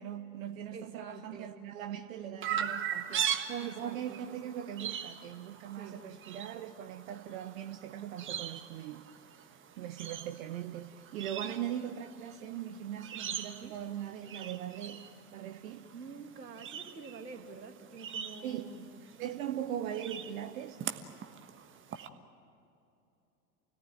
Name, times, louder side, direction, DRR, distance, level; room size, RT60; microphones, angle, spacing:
voice 1, 0.0-9.0 9.8-15.0 15.3-15.9 18.4-18.7 19.2-20.8, right 10 dB, 55° right, 1.2 m, -40 dB
voice 2, 0.7-1.6 3.6-4.3 5.7-6.0 13.6-13.8 15.7-18.9, right 4 dB, 85° right, 2.4 m, -47 dB
Chirp tweet, 2.4-22.1, right 9 dB, 25° right, 1.5 m, -41 dB
29.0 x 18.5 x 9.2 m
figure-of-eight pair, 90°, 48 cm